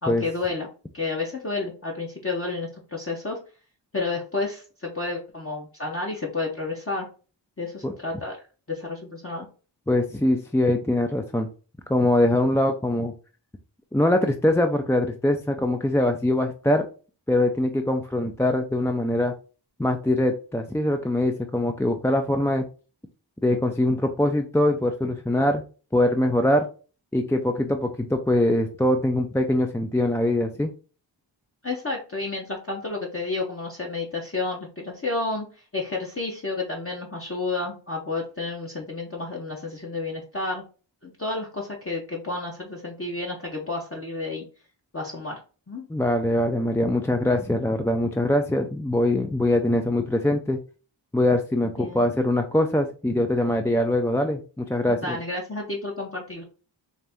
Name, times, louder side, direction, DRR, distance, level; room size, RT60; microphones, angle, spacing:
voice 1, 0.0-3.4 3.9-7.1 7.6-8.4 8.7-9.5 31.6-35.5 35.7-40.6 41.0-44.4 44.9-45.4 45.7-45.9 51.6-52.0 54.9-56.4, left 3 dB, 30° left, -2 dB, 0.8 m, -31 dB
voice 2, 9.9-11.5 11.9-13.1 13.9-16.9 17.3-19.3 19.8-22.6 23.4-25.6 25.9-26.7 27.1-30.7 45.9-50.6 51.1-55.2, left 1 dB, 5° left, 5 dB, 0.3 m, -23 dB
4.2 x 2.5 x 3.4 m, 0.36 s
wide cardioid pair, 60°, 47 cm